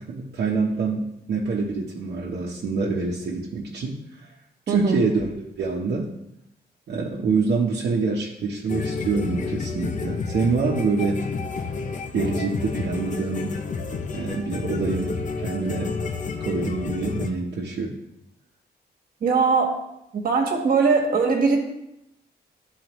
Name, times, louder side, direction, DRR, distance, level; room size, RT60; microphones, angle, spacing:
voice 1, 0.0-4.0 4.7-6.1 6.9-11.2 12.1-13.5 14.1-15.1 15.4-15.9 16.4-17.9, right 4 dB, 70° right, -3 dB, 1.0 m, -26 dB
voice 2, 4.7-5.0 19.2-19.8 20.1-21.6, right 4 dB, 55° right, 1 dB, 1.5 m, -20 dB
sound 1, 8.7-17.3, left 4 dB, 45° left, 0.6 m, -30 dB
12.0 x 4.1 x 3.1 m, 0.84 s
wide cardioid pair, 160°, 17 cm